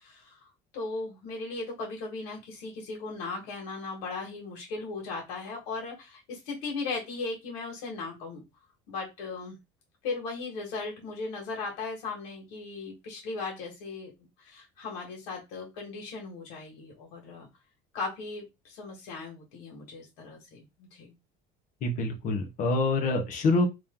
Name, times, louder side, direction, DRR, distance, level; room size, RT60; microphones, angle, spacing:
voice 1, 0.0-8.4 8.9-9.6 10.0-14.1 14.4-17.5 17.9-21.1, left 3 dB, 90° left, -1 dB, 1.6 m, -37 dB
voice 2, 21.8-23.7, left 2 dB, 40° left, 4 dB, 1.0 m, -26 dB
3.1 x 2.8 x 3.6 m, 0.22 s
cardioid pair, 165°, 20 cm